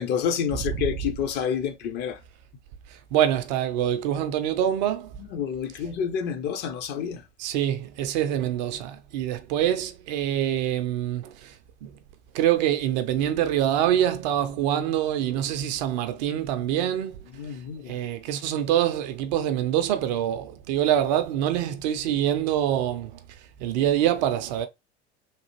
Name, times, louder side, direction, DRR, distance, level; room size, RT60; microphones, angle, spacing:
voice 1, 0.0-2.2 5.3-7.2 17.4-18.0, left 8 dB, 30° left, 0.5 m, -28 dB
voice 2, 2.9-5.1 7.4-11.9 12.3-17.2 17.5-17.6 17.9-24.7, right 11 dB, 40° right, 0.4 m, -25 dB
3.2 x 2.4 x 2.9 m
figure-of-eight pair, 80°, 35 cm